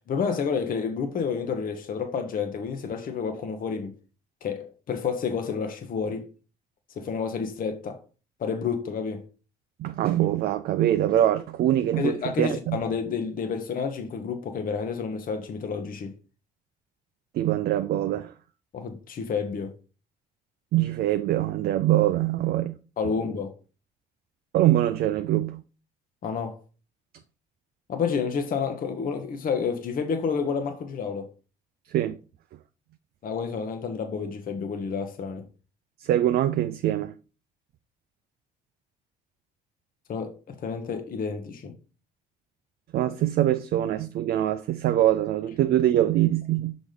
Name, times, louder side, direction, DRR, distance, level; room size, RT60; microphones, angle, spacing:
voice 1, 0.1-3.9 4.4-6.3 7.0-8.0 8.4-9.2 12.0-16.1 18.7-19.8 23.0-23.5 26.2-26.6 27.9-31.3 33.2-35.4 40.1-41.7, left 5 dB, 45° left, 0.9 m, -30 dB
voice 2, 9.8-12.8 17.3-18.3 20.7-22.8 24.5-25.6 31.9-32.2 36.0-37.1 42.9-46.8, right 13 dB, 50° right, 0.5 m, -23 dB
6.1 x 4.1 x 5.0 m
figure-of-eight pair, 50°, 21 cm